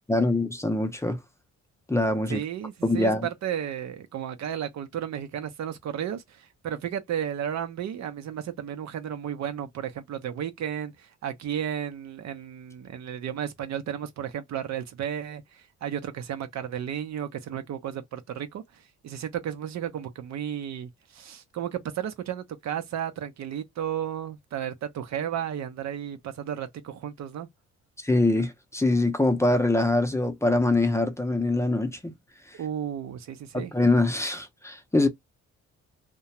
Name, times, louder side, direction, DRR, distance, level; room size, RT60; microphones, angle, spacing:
voice 1, 0.1-1.2 1.9-2.4 2.8-3.3 28.0-32.1 33.5-35.1, left 2 dB, 10° left, 0.6 m, -24 dB
voice 2, 2.3-27.5 32.5-33.7, right 9 dB, 65° right, 0.7 m, -33 dB
2.3 x 2.2 x 2.9 m
cardioid pair, 90°, 30 cm